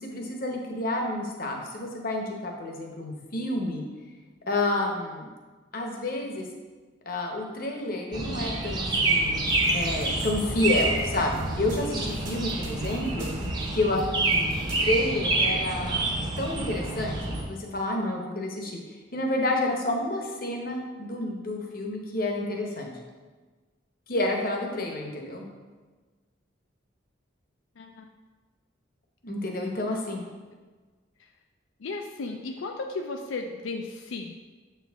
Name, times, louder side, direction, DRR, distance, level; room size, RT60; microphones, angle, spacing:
voice 1, 0.0-3.8 4.5-5.3 5.7-6.5 7.1-9.5 9.7-13.3 13.7-16.1 16.4-17.2 17.5-22.9 24.1-25.4 29.2-30.2, left 2 dB, 45° left, 1 dB, 0.8 m, -29 dB
sound 1, 8.1-17.4, right 2 dB, 20° right, 0.7 m, -28 dB
sound 2, 9.5-14.8, equal, 85° right, 1.3 m, -38 dB
voice 2, 27.8-28.1 31.2-31.3 31.8-34.3, left 3 dB, 80° left, 3 dB, 0.4 m, -35 dB
6.9 x 4.6 x 3.4 m, 1.4 s
head